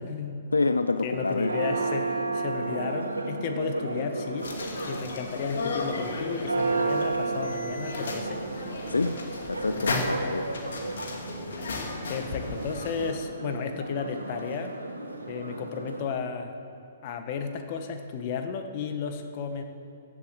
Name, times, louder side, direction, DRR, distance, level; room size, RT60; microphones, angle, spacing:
voice 1, 0.0-0.4 1.0-4.5 4.8-8.4 12.1-14.7 15.3-16.5 17.0-19.6, left 6 dB, 40° left, 6 dB, 1.5 m, -33 dB
voice 2, 0.5-1.6 8.9-9.2 9.5-10.5, left 3 dB, 80° left, 11 dB, 0.5 m, -27 dB
Church bell, 1.1-16.0, right 3 dB, 90° right, 2.0 m, -33 dB
sound 1, 4.4-13.1, left 3 dB, 65° left, 2.2 m, -35 dB
15.5 x 7.9 x 7.9 m, 2.6 s
figure-of-eight pair, 120°, 0 cm